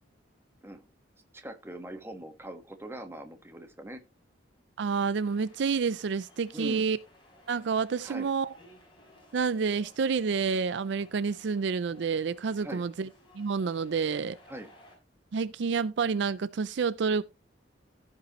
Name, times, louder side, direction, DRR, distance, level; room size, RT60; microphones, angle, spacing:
voice 1, 1.3-4.0 6.5-6.8 8.0-8.3 12.6-12.8 14.5-14.7, right 1 dB, 15° right, 1.4 m, -41 dB
voice 2, 4.8-7.0 7.5-8.5 9.3-13.1 13.3-14.4 15.3-17.2, right 5 dB, 65° right, 0.4 m, -29 dB
sound 1, 5.2-15.0, left 1 dB, 25° left, 5.7 m, -58 dB
15.5 x 5.4 x 3.0 m
head